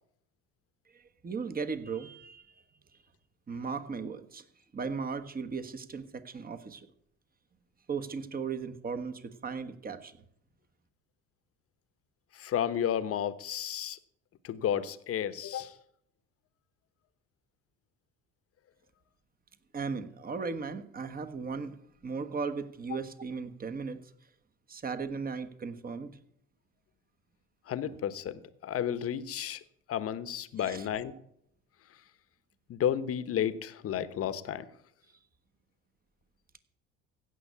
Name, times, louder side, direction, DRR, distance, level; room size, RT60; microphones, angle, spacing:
voice 1, 0.9-2.5 3.5-4.4 4.7-6.9 7.9-10.2 19.7-21.7 22.0-24.0 24.7-26.2 30.6-31.0, right 5 dB, 30° right, 9 dB, 1.5 m, -37 dB
voice 2, 12.3-14.0 14.4-15.7 27.7-29.6 29.9-31.1 32.7-34.6, left 9 dB, 45° left, 14 dB, 1.1 m, -32 dB
16.0 x 6.3 x 8.4 m, 0.72 s
supercardioid pair, 75°, 31 cm